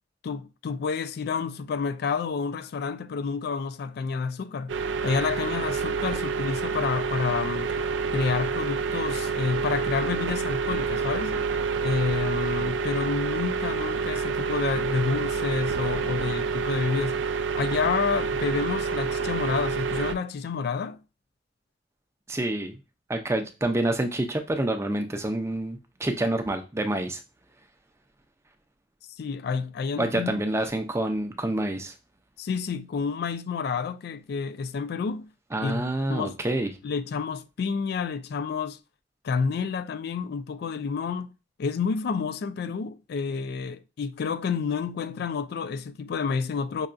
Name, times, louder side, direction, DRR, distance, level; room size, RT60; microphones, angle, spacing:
voice 1, 0.2-4.8 5.0-7.7 8.1-11.4 11.8-21.0 29.2-30.4 32.4-35.3 35.6-35.8 36.1-36.4 36.8-38.8 39.2-41.3 41.6-46.9, left 5 dB, 60° left, 0.3 m, -29 dB
sound 1, 4.7-20.1, right 5 dB, 85° right, 0.4 m, -28 dB
voice 2, 22.3-22.8 23.1-27.2 30.0-31.9 35.5-36.7, right 1 dB, 15° right, 0.5 m, -27 dB
5.4 x 2.3 x 2.5 m
head